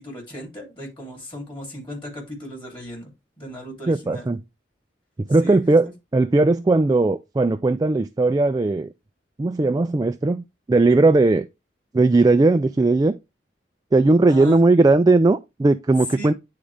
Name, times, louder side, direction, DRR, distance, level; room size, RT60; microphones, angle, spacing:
voice 1, 0.0-3.1 3.4-4.3 5.4-5.6 14.3-14.6 16.1-16.3, equal, 30° left, 3.0 m, -36 dB
voice 2, 3.9-4.4 5.3-8.9 9.4-11.5 11.9-13.2 13.9-16.3, right 2 dB, 20° right, 0.3 m, -18 dB
9.7 x 3.8 x 3.3 m
head